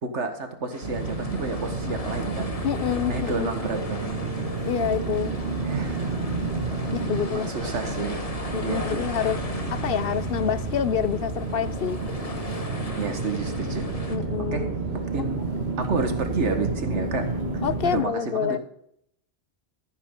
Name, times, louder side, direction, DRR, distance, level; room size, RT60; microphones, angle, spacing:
voice 1, 0.0-2.6 3.1-4.3 5.6-6.0 7.3-8.3 8.6-9.0 13.0-13.9 14.5-15.5 15.8-17.3 17.8-18.6, right 3 dB, 90° right, 6 dB, 1.8 m, -30 dB
sound 1, 0.7-14.2, left 2 dB, 30° left, 1.4 m, -38 dB
sound 2, 0.8-18.0, right 3 dB, 65° right, 2.2 m, -30 dB
voice 2, 2.6-3.5 4.6-5.3 6.9-7.5 8.5-9.4 9.7-12.0 14.1-14.7 17.6-18.6, left 8 dB, 60° left, 15 dB, 0.8 m, -27 dB
15.0 x 9.3 x 3.8 m, 0.69 s
omnidirectional pair, 1.2 m